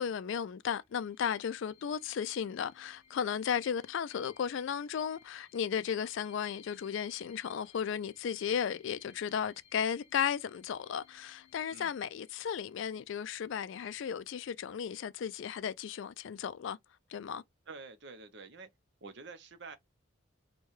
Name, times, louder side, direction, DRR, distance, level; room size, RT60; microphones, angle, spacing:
voice 1, 0.0-16.8 17.1-17.4, left 7 dB, 60° left, 0.3 m, -35 dB
sound 1, 0.8-14.2, left 7 dB, 35° left, 1.1 m, -63 dB
voice 2, 17.7-18.7 19.0-19.8, right 4 dB, 55° right, 0.7 m, -48 dB
4.5 x 2.2 x 3.1 m
head